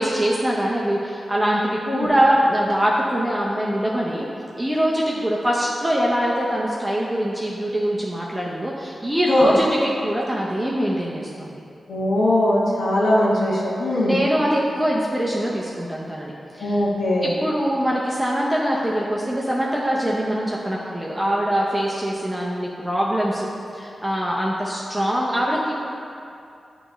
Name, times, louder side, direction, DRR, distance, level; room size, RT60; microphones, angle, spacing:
voice 1, 0.0-4.3 4.6-11.6 13.9-16.9 17.2-23.5 23.7-25.7, equal, 10° right, -4 dB, 0.6 m, -23 dB
voice 2, 11.9-14.2 16.6-17.3, left 1 dB, 80° left, -5 dB, 1.0 m, -20 dB
8.7 x 3.0 x 5.0 m, 2.6 s
wide cardioid pair, 115°, 0 cm